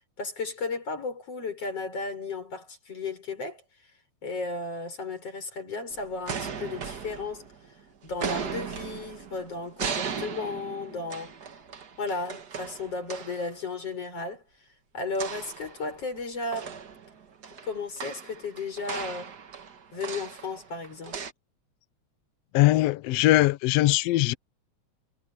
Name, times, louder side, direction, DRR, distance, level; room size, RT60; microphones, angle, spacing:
voice 1, 0.2-3.6 4.2-7.4 8.0-11.3 12.0-14.4 14.9-16.7 17.6-19.3 19.9-21.2, left 3 dB, 50° left, 7.7 m, -34 dB
sound 1, 5.9-7.7 8.1-13.5 15.1-16.2 16.5-21.3, right 6 dB, 45° right, 1.5 m, -37 dB
voice 2, 22.5-24.3, left 17 dB, 80° left, 1.4 m, -21 dB
omnidirectional pair, 3.5 m